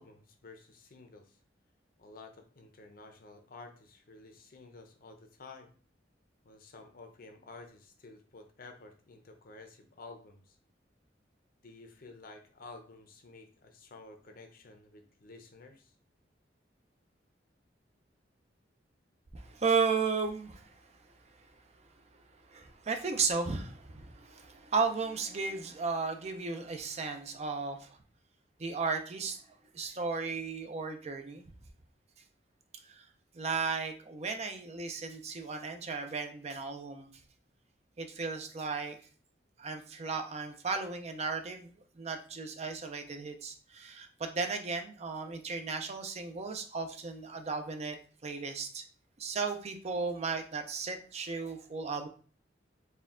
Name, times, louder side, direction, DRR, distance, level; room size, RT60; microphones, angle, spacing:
voice 1, 0.0-1.4 2.0-5.7 6.4-10.6 11.6-15.9, left 3 dB, 50° left, 6 dB, 0.7 m, -52 dB
voice 2, 19.3-20.9 21.4-21.5 22.5-28.0 28.6-29.4 29.7-31.5 32.8-33.0 33.3-37.1 38.0-39.0 39.6-41.7 42.0-48.0 48.2-48.8 49.2-52.1, right 4 dB, 35° right, 6 dB, 0.5 m, -35 dB
4.3 x 2.3 x 3.6 m, 0.41 s
head